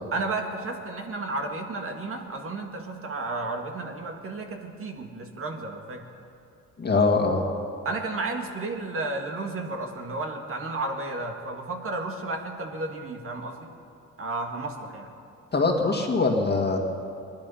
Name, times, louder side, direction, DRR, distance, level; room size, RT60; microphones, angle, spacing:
voice 1, 0.1-6.0 7.8-13.7 14.2-15.1, right 3 dB, 45° right, 3 dB, 1.8 m, -32 dB
voice 2, 6.8-7.4 15.5-16.8, left 3 dB, 35° left, 2 dB, 2.0 m, -22 dB
20.0 x 11.5 x 5.6 m, 2.6 s
cardioid pair, 90°, 30 cm